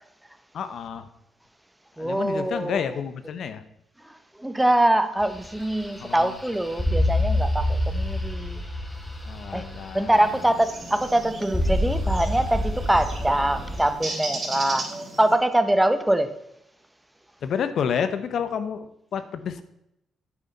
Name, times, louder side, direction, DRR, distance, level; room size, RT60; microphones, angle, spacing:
voice 1, 0.5-1.1 2.0-3.6 6.0-6.4 9.2-10.3 17.4-19.6, left 7 dB, 65° left, 11 dB, 0.9 m, -30 dB
voice 2, 2.0-3.0 4.0-8.6 9.5-9.6 9.9-14.9 15.2-16.3, right 1 dB, 5° right, 10 dB, 0.9 m, -23 dB
sound 1, 5.2-13.9, left 1 dB, 10° left, 1.8 m, -28 dB
sound 2, 10.1-15.3, right 2 dB, 35° right, 3.2 m, -36 dB
9.8 x 8.8 x 4.1 m, 0.82 s
cardioid pair, 90°, 0 cm